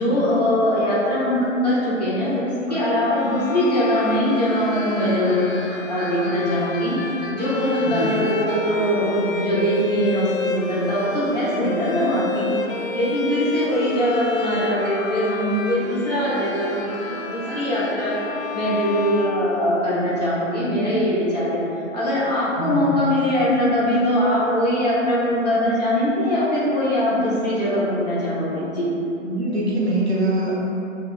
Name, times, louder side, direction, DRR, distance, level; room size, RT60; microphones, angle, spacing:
voice 1, 0.0-7.0 7.3-12.6 12.9-18.2 18.5-21.6 21.9-28.9, equal, 30° left, -9 dB, 0.8 m, -22 dB
sound 1, 2.2-2.3 2.6-8.6 13.6-18.0, equal, 30° right, 1.2 m, -39 dB
Bowed string instrument, 3.1-20.1, left 4 dB, 80° left, 0.5 m, -30 dB
voice 2, 22.6-22.9 29.2-30.6, right 1 dB, 55° right, -6 dB, 0.9 m, -23 dB
6.1 x 2.4 x 2.4 m, 2.9 s
figure-of-eight pair, 145°, 40 cm